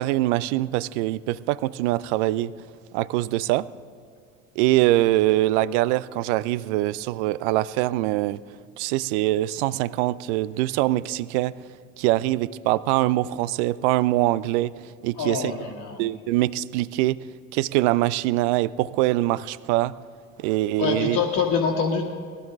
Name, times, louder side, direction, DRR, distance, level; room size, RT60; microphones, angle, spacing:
voice 1, 0.0-2.5 2.9-3.6 4.6-8.4 8.8-11.5 12.0-14.7 15.0-15.5 16.0-17.2 17.5-19.9 20.4-21.2, right 16 dB, 55° right, 20 dB, 0.5 m, -23 dB
voice 2, 15.2-16.0 20.8-22.0, left 6 dB, 40° left, -3 dB, 1.5 m, -25 dB
18.5 x 12.5 x 3.6 m, 2.3 s
figure-of-eight pair, 70°, 42 cm